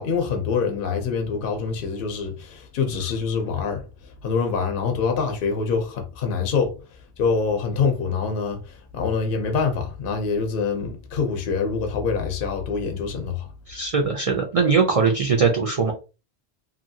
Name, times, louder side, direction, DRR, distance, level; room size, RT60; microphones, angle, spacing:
voice 1, 0.0-3.8 4.2-6.7 7.2-8.6 8.9-13.5, left 5 dB, 55° left, 0.8 m, -25 dB
voice 2, 13.7-15.9, right 5 dB, 50° right, 0.4 m, -21 dB
2.8 x 2.6 x 2.7 m
omnidirectional pair, 1.2 m